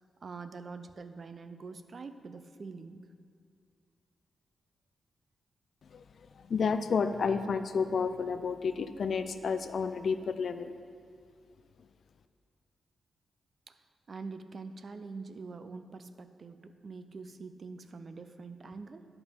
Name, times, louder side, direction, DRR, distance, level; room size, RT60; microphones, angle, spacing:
voice 1, 0.0-3.0 13.7-13.8 14.1-19.1, right 4 dB, 45° right, 10 dB, 0.4 m, -45 dB
voice 2, 6.4-10.7, left 5 dB, 60° left, 10 dB, 0.4 m, -31 dB
11.5 x 5.4 x 4.5 m, 2.2 s
cardioid pair, 110°, 0 cm